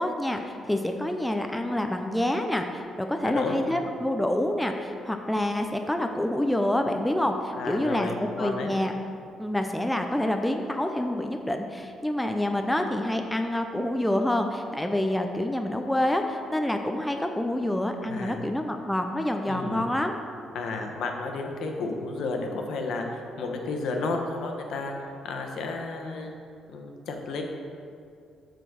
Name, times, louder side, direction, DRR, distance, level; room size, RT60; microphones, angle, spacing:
voice 1, 0.0-8.9 9.4-20.2, left 1 dB, 5° left, 4 dB, 0.5 m, -27 dB
voice 2, 3.2-3.8 7.6-8.7 18.0-18.4 19.4-20.0 20.5-26.3 26.7-27.4, left 3 dB, 75° left, 3 dB, 1.0 m, -32 dB
7.5 x 3.9 x 6.7 m, 2.3 s
cardioid pair, 90°, 0 cm